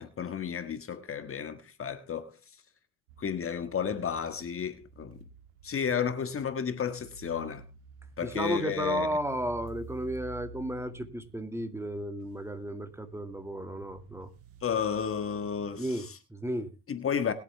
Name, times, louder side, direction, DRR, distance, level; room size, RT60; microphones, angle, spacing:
voice 1, 0.0-2.4 3.2-5.2 5.6-7.6 8.2-9.1 14.6-16.2 16.9-17.3, left 7 dB, 40° left, 1.5 m, -32 dB
sound 1, 3.1-15.8, right 5 dB, 90° right, 1.7 m, -51 dB
voice 2, 8.2-14.3 15.8-16.7, right 1 dB, 5° right, 2.0 m, -33 dB
20.5 x 8.2 x 3.4 m
supercardioid pair, 80°, 35 cm